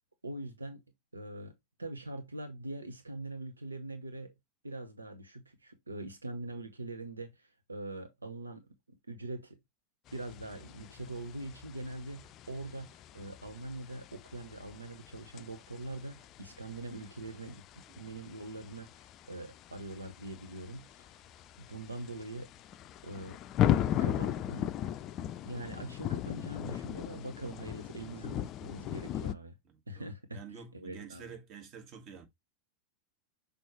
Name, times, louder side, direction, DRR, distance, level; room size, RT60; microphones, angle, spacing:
voice 1, 0.2-0.8 1.1-1.5 1.8-4.3 4.6-8.7 9.1-9.6 10.1-21.1 21.6-22.5 23.0-23.4 24.0-24.7 25.4-29.6 29.9-31.3, right 2 dB, 80° right, 0.9 m, -43 dB
sound 1, 10.1-29.3, left 11 dB, 35° left, 0.4 m, -38 dB
voice 2, 29.6-32.3, right 6 dB, 40° right, 1.9 m, -49 dB
6.2 x 5.2 x 3.1 m
figure-of-eight pair, 90°, 0 cm